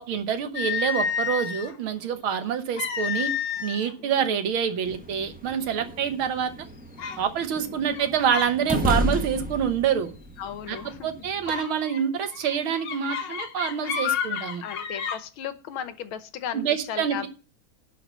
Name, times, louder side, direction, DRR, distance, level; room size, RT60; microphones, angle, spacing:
voice 1, 0.0-3.3 3.6-6.5 7.2-10.1 10.7-10.8 11.0-14.6 16.5-17.3, right 8 dB, 80° right, 2.0 m, -26 dB
sound 1, 0.6-1.8 2.8-3.9 4.2-4.5 5.2-5.3 5.8-6.2 7.0-7.2 7.8-8.6 8.9-9.2 10.7-10.9 11.5-15.2, left 7 dB, 65° left, 1.7 m, -31 dB
voice 2, 4.0-4.5 10.4-11.1 14.6-17.3, left 9 dB, 80° left, 1.7 m, -36 dB
sound 2, 4.9-11.6, equal, 15° right, 0.3 m, -33 dB
11.5 x 4.9 x 8.1 m
omnidirectional pair, 2.2 m